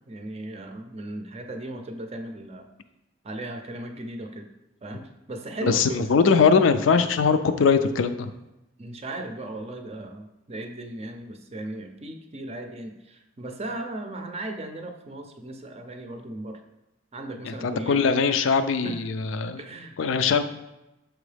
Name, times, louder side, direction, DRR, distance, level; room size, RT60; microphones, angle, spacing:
voice 1, 0.1-2.7 3.2-4.5 4.8-5.0 5.3-6.0 8.8-16.6 17.1-18.0 18.3-18.6 18.8-18.9 19.6-20.0, right 1 dB, 30° right, 6 dB, 0.5 m, -36 dB
voice 2, 5.6-8.3 17.4-19.6 20.0-20.4, left 5 dB, 75° left, 10 dB, 0.4 m, -21 dB
6.1 x 4.6 x 3.3 m, 0.95 s
head